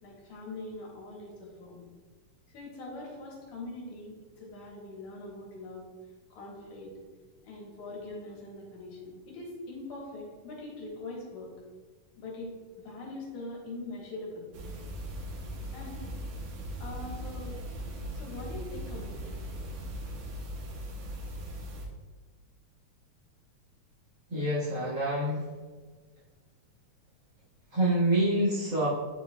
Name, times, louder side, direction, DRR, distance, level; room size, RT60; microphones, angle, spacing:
voice 1, 0.0-1.8 2.5-5.9 6.3-6.9 7.4-11.5 12.2-14.5 15.7-16.0 16.8-17.6 18.1-19.4, left 2 dB, 70° left, -3 dB, 2.7 m, -42 dB
sound 1, 14.5-21.9, equal, 70° right, 2.1 m, -39 dB
voice 2, 24.3-25.5 27.7-28.9, right 1 dB, 45° right, -8 dB, 1.9 m, -27 dB
9.5 x 4.7 x 2.3 m, 1.4 s
omnidirectional pair, 3.6 m